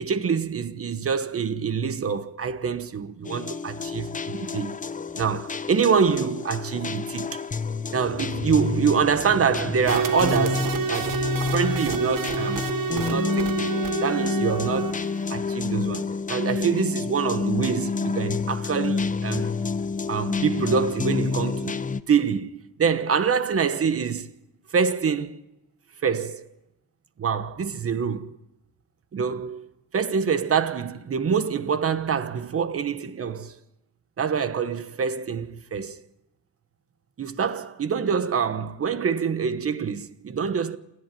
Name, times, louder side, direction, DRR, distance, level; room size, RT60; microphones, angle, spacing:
voice 1, 0.0-4.7 5.1-7.4 7.9-12.7 12.9-13.7 14.0-15.0 15.3-19.5 20.1-21.8 22.1-24.3 24.7-25.4 26.0-26.5 27.2-28.4 29.1-29.7 29.9-33.6 34.2-36.0 37.2-40.8, right 6 dB, 40° right, 1.2 m, -25 dB
sound 1, 3.3-22.0, left 4 dB, 20° left, 0.7 m, -29 dB
sound 2, 9.9-15.2, right 5 dB, 65° right, 1.6 m, -29 dB
28.5 x 11.0 x 9.1 m
cardioid pair, 135°, 35 cm